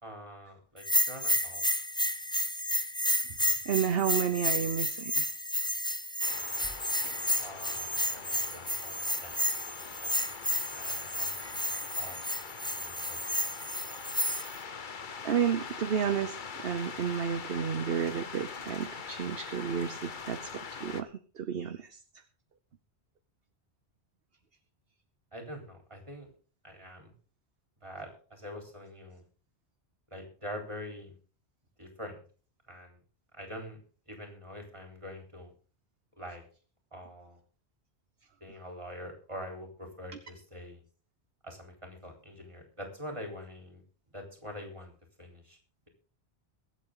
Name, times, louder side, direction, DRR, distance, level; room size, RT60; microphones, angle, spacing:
voice 1, 0.0-1.7 7.4-7.9 8.1-8.9 9.2-9.3 9.8-10.1 10.8-11.6 12.0-12.2 12.8-13.3 25.3-26.3 26.6-27.1 27.8-29.2 30.1-31.2 31.8-32.2 32.7-33.0 33.3-33.8 34.1-35.5 36.2-36.4 36.9-37.4 38.4-40.8 41.4-43.8 44.1-44.9 45.2-45.6, equal, 25° right, 2 dB, 4.0 m, -44 dB
Bell, 0.8-14.6, left 1 dB, 5° left, 0.7 m, -31 dB
voice 2, 3.7-5.3 15.2-16.4 16.6-21.1 21.4-21.9, right 7 dB, 60° right, 10 dB, 1.1 m, -31 dB
sound 1, 6.2-21.0, left 5 dB, 50° left, 1.1 m, -43 dB
22.5 x 8.3 x 3.9 m, 0.40 s
omnidirectional pair, 1.1 m